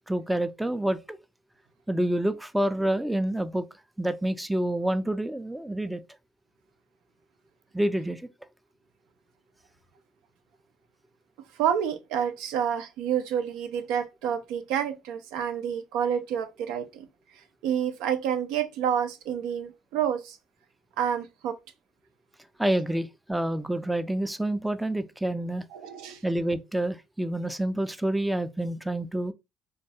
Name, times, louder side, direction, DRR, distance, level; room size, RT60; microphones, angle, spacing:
voice 1, 0.1-1.2 1.9-3.7 4.0-6.0 7.7-8.3 22.6-25.7 26.2-29.3, right 1 dB, 5° right, 0.3 m, -28 dB
voice 2, 11.6-17.1 17.6-20.4 21.0-21.6 25.7-26.2, right 8 dB, 80° right, 0.4 m, -28 dB
2.2 x 2.2 x 2.6 m
supercardioid pair, 70°, 0 cm